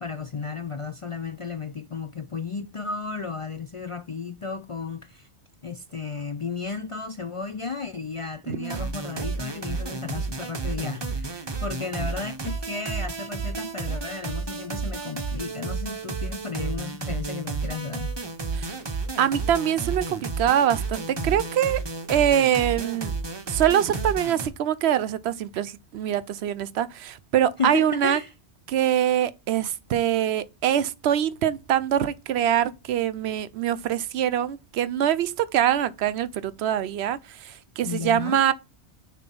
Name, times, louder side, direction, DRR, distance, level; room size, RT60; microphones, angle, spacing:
voice 1, 0.0-5.3 5.6-18.1 27.6-28.3 37.8-38.4, left 5 dB, 45° left, 0.4 m, -34 dB
voice 2, 8.5-8.8 18.5-18.7 19.2-21.8 22.1-23.1 23.5-28.2 28.7-38.5, right 10 dB, 75° right, 0.8 m, -24 dB
sound 1, 8.6-24.5, right 4 dB, 25° right, 0.7 m, -32 dB
6.7 x 3.0 x 5.3 m
omnidirectional pair, 1.1 m